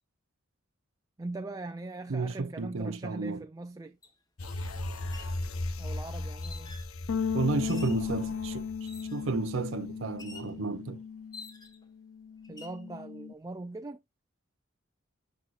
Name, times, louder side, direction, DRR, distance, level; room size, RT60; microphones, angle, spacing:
voice 1, 1.2-4.0 5.8-6.8 12.5-14.0, right 2 dB, 15° right, 0.4 m, -41 dB
voice 2, 2.1-3.4 7.3-11.0, right 4 dB, 65° right, 0.6 m, -32 dB
sound 1, 4.0-4.1 5.0-5.4 6.4-6.9 7.7-8.1 8.8-9.3 10.2-10.6 11.3-11.9 12.4-12.8, left 4 dB, 20° left, 1.3 m, -48 dB
sound 2, 4.4-10.0 10.4-10.5, left 2 dB, 90° left, 1.0 m, -38 dB
sound 3, 7.1-11.6 11.9-13.3, left 6 dB, 75° left, 0.5 m, -36 dB
12.5 x 4.3 x 2.5 m
head